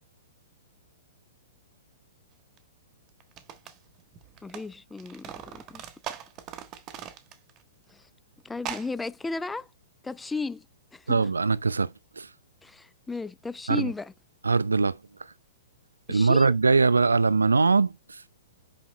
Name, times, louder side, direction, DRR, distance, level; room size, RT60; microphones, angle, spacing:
sound 1, 2.6-2.7 3.2-4.7 4.9-7.6 7.9-8.0 8.6-8.9, right 9 dB, 30° right, 1.2 m, -40 dB
voice 1, 4.4-5.8 7.9-8.1 8.4-9.7 10.0-10.7 10.9-11.3 12.6-14.1 16.1-16.5, left 3 dB, 10° left, 0.4 m, -35 dB
voice 2, 11.1-12.3 13.7-13.9 14.4-15.3 16.1-18.2, right 4 dB, 75° right, 0.5 m, -22 dB
6.3 x 5.9 x 3.2 m
figure-of-eight pair, 110°, 0 cm